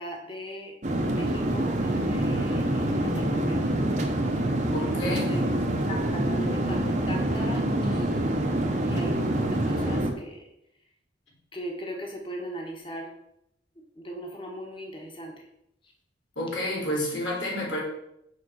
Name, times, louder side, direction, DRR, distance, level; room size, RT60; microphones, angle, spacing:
voice 1, 0.0-3.7 4.8-10.5 11.5-13.1 13.9-15.3, right 1 dB, 25° left, 1 dB, 1.6 m, -38 dB
sound 1, 0.8-10.1, right 1 dB, 40° right, 1.1 m, -26 dB
voice 2, 4.7-5.5 16.4-17.8, left 1 dB, 80° left, -3 dB, 4.0 m, -30 dB
6.7 x 5.6 x 7.0 m, 0.80 s
head